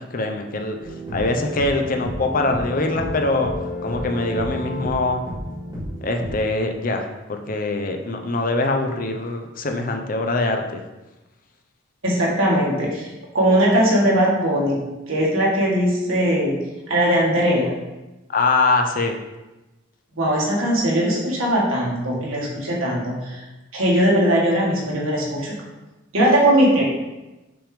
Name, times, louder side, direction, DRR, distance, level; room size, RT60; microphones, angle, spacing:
voice 1, 0.0-3.5 3.8-5.2 6.0-10.8 18.3-19.2, left 2 dB, 40° left, 4 dB, 0.6 m, -23 dB
sound 1, 0.8-6.3, left 1 dB, 20° right, 2.1 m, -31 dB
voice 2, 12.0-17.7 20.2-23.4 23.7-25.6 26.1-26.8, equal, 85° right, -4 dB, 1.8 m, -20 dB
6.0 x 3.5 x 5.0 m, 1.1 s
head